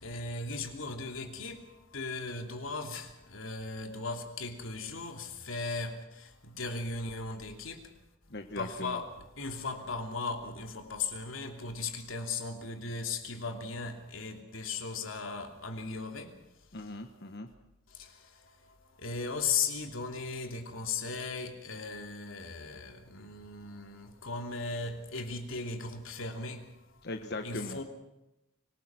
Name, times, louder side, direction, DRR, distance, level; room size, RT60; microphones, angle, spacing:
voice 1, 0.0-7.9 8.5-16.9 17.9-27.1 27.4-27.8, left 4 dB, 85° left, 3.0 m, -37 dB
voice 2, 8.3-9.0 16.7-17.5 27.0-27.8, left 2 dB, 55° left, 1.4 m, -39 dB
25.0 x 20.5 x 6.1 m
head